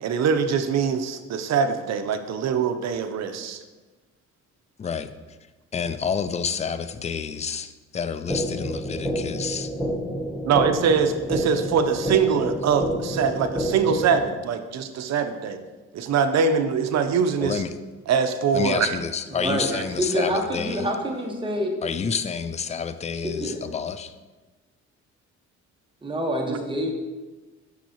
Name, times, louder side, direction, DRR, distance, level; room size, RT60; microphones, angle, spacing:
voice 1, 0.0-3.6 10.4-15.6 15.9-17.6 18.1-19.0 19.7-19.8 26.5-26.6, right 6 dB, 60° right, 9 dB, 0.6 m, -23 dB
voice 2, 4.8-5.1 5.7-9.7 17.4-17.7 18.5-20.9 21.8-24.1, left 6 dB, 25° left, 12 dB, 0.3 m, -29 dB
sound 1, 8.3-14.3, equal, ahead, 0.7 m, -29 dB
voice 3, 19.3-19.7 20.0-21.8 23.2-23.6 26.0-26.9, equal, 15° right, 1 dB, 1.1 m, -27 dB
5.9 x 5.6 x 2.9 m, 1.2 s
cardioid pair, 90°, 30 cm